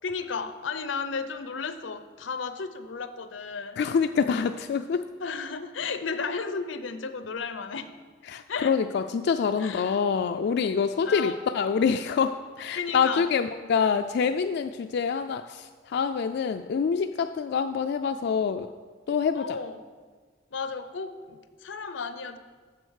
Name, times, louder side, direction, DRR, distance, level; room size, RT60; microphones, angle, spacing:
voice 1, 0.0-3.8 5.2-7.9 8.5-8.7 9.6-10.1 11.0-11.4 12.8-13.3 19.3-19.8 20.5-22.4, left 5 dB, 90° left, 11 dB, 0.7 m, -34 dB
voice 2, 3.8-5.0 8.3-18.7 19.1-19.6, left 6 dB, 60° left, 8 dB, 0.3 m, -26 dB
7.7 x 7.2 x 6.4 m, 1.5 s
head